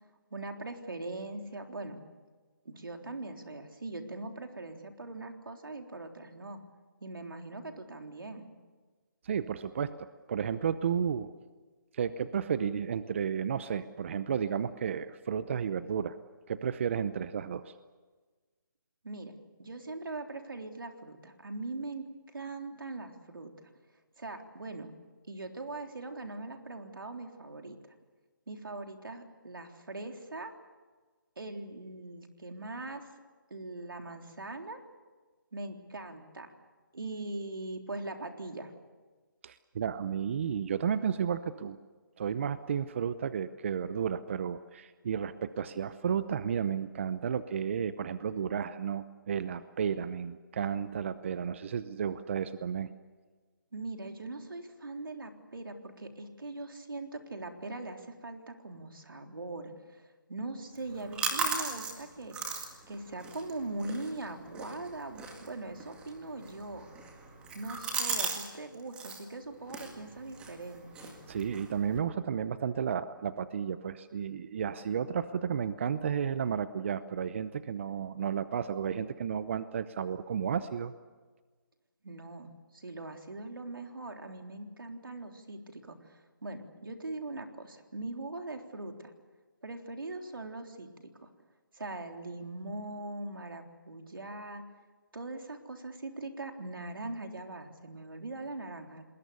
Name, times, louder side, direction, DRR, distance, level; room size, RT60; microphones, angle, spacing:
voice 1, 0.3-2.0 2.7-6.6 7.0-8.5 19.0-19.3 19.6-22.1 22.3-23.5 24.2-24.9 25.3-27.8 28.5-30.5 31.4-33.1 33.5-34.8 35.5-36.5 36.9-38.7 53.7-60.0 60.3-62.4 62.9-66.9 67.5-71.2 82.0-89.1 89.6-90.9 91.2-91.3 91.7-94.6 95.1-99.0, right 2 dB, 85° right, 4 dB, 3.6 m, -41 dB
voice 2, 9.2-11.3 11.9-16.1 16.5-17.7 39.4-41.8 42.2-52.9 71.3-80.9, right 7 dB, 35° right, 14 dB, 0.7 m, -32 dB
sound 1, 60.8-68.5 68.7-69.2 69.7-72.0, right 4 dB, 10° right, 2.0 m, -38 dB
28.5 x 20.5 x 7.0 m, 1.4 s
hypercardioid pair, 160°, 11 cm